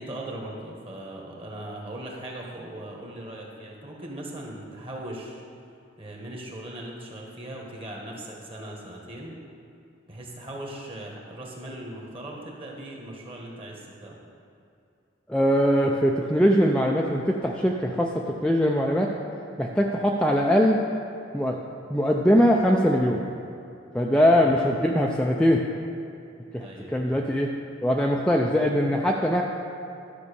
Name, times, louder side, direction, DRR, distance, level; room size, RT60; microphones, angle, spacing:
voice 1, 0.0-5.4 6.0-9.3 10.1-14.2 24.3-24.7 26.6-27.2, right 1 dB, 30° right, -1 dB, 1.6 m, -39 dB
voice 2, 15.3-19.1 19.6-20.8 21.3-21.6 21.9-23.2 23.9-25.6 26.5-27.5 27.8-29.4, equal, 5° left, -1 dB, 0.5 m, -22 dB
12.5 x 5.5 x 6.9 m, 2.6 s
head